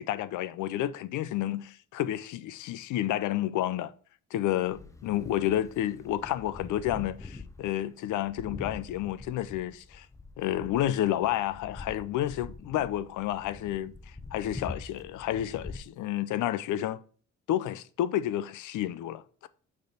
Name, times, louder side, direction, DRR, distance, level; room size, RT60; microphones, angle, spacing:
voice 1, 0.0-3.9 4.3-10.1 10.4-17.0 17.5-19.5, left 12 dB, 80° left, 0.5 m, -30 dB
sound 1, 4.7-15.8, left 3 dB, 10° left, 0.7 m, -45 dB
6.5 x 3.4 x 5.1 m
cardioid pair, 90°, 30 cm